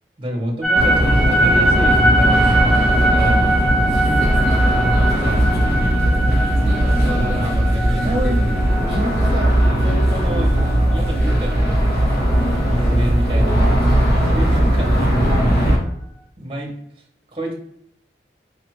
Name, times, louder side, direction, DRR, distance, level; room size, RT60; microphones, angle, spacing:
voice 1, 0.2-2.6 2.9-3.4 4.9-5.5 6.8-8.5 8.8-11.8 12.7-13.6 14.1-15.4 16.4-16.7 17.3-17.5, equal, 30° right, -1 dB, 0.9 m, -28 dB
sound 1, 0.6-12.8, right 1 dB, ahead, 0.3 m, -22 dB
sound 2, 0.8-15.8, equal, 65° left, 1.3 m, -18 dB
4.9 x 2.4 x 3.1 m, 0.73 s
head